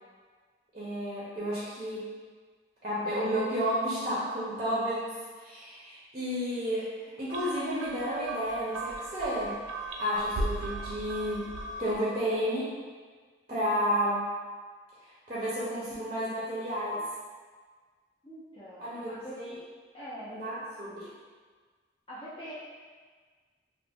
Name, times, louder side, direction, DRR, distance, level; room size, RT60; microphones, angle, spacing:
voice 1, 0.7-2.1 2.8-5.1 5.4-6.9 7.2-9.6 10.0-11.5 11.8-12.7 13.5-14.3 15.0-17.0 18.8-19.5 20.3-21.1, equal, 35° right, -8 dB, 0.5 m, -31 dB
sound 1, 7.3-12.1, right 2 dB, 90° right, 0.3 m, -37 dB
voice 2, 18.2-19.4 19.9-20.3 22.1-22.5, equal, 25° left, -11 dB, 0.4 m, -43 dB
2.4 x 2.1 x 3.3 m, 1.5 s
head